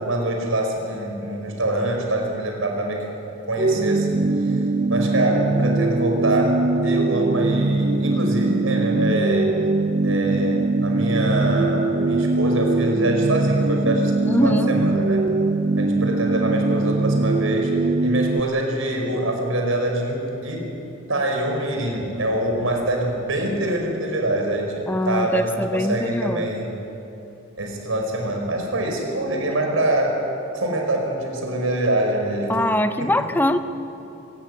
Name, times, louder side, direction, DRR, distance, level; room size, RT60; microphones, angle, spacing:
voice 1, 0.0-3.0 3.5-4.5 4.9-6.6 6.8-9.5 10.0-14.1 14.4-15.2 15.8-17.7 18.0-20.7 21.1-26.7 27.6-30.2 30.5-32.6 33.0-33.1, right 1 dB, 85° right, 1 dB, 5.1 m, -24 dB
sound 1, 3.6-18.4, right 2 dB, 40° right, 0.5 m, -21 dB
voice 2, 14.2-14.8 24.9-26.5 32.5-33.6, left 1 dB, 10° left, 9 dB, 0.7 m, -22 dB
25.0 x 14.0 x 9.8 m, 2.9 s
head